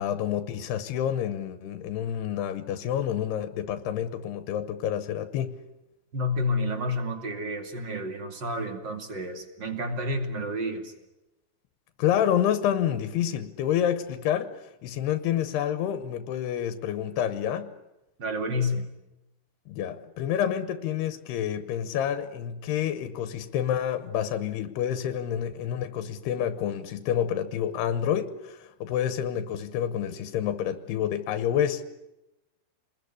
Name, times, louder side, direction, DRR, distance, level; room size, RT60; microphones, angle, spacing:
voice 1, 0.0-5.6 12.0-14.5 14.8-17.7 19.7-31.8, left 10 dB, 85° left, 3.2 m, -28 dB
voice 2, 6.1-10.9 18.2-18.9, left 1 dB, 35° right, 2.5 m, -30 dB
28.0 x 21.0 x 9.8 m
omnidirectional pair, 4.6 m